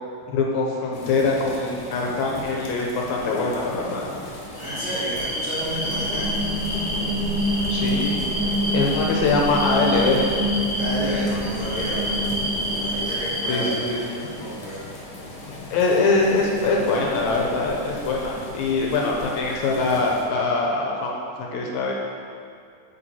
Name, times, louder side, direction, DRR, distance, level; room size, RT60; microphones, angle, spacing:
voice 1, 0.3-4.1 7.7-8.2 8.7-10.3 13.5-14.3 15.7-21.9, left 3 dB, 75° left, -1 dB, 1.9 m, -23 dB
sound 1, 0.9-20.3, left 2 dB, 60° left, 1.6 m, -38 dB
sound 2, 4.5-13.7, equal, 30° left, 0.8 m, -29 dB
voice 2, 4.6-6.4 10.8-12.1 12.8-13.7 14.1-14.8, right 1 dB, 45° right, -12 dB, 2.3 m, -31 dB
sound 3, 5.6-13.4, equal, 80° right, 2.6 m, -27 dB
8.2 x 4.6 x 4.2 m, 2.3 s
omnidirectional pair, 3.7 m